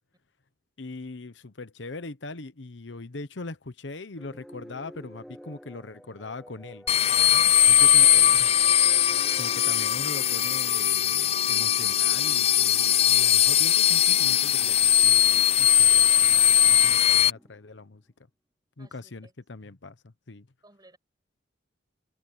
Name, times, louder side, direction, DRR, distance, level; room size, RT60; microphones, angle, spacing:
voice 1, 0.8-6.9 7.2-8.5 9.4-18.0 18.8-20.5, left 3 dB, 80° left, 1.0 m, -41 dB
sound 1, 4.2-17.9, equal, ahead, 1.2 m, -49 dB
sound 2, 6.9-17.3, left 11 dB, 35° left, 0.4 m, -20 dB
voice 2, 18.8-19.3 20.6-21.0, right 2 dB, 20° right, 5.7 m, -56 dB
head